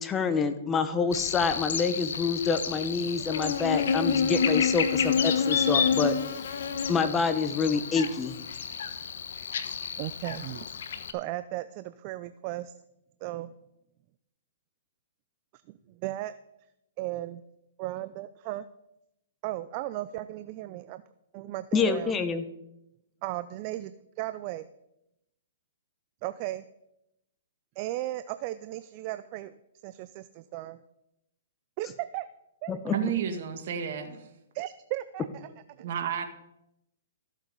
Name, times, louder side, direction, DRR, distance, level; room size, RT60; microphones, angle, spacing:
voice 1, 0.0-6.2 6.9-8.4 21.7-22.4 32.7-33.0, left 5 dB, 20° left, 10 dB, 0.9 m, -27 dB
Buzz, 1.1-11.1, left 6 dB, 70° left, 1.2 m, -29 dB
voice 2, 10.0-10.7 11.1-12.7 13.2-13.5 15.9-16.3 17.0-17.4 17.8-18.7 19.4-21.0 21.3-22.1 23.2-24.7 26.2-26.6 27.8-29.5 29.8-30.8 31.8-32.3 32.6-32.8 34.5-35.5 35.8-35.9, right 15 dB, 40° right, 13 dB, 0.5 m, -35 dB
voice 3, 32.9-34.3 35.8-36.2, right 7 dB, 60° right, 6 dB, 1.8 m, -31 dB
14.5 x 7.3 x 5.3 m, 0.86 s
hypercardioid pair, 140°, 0 cm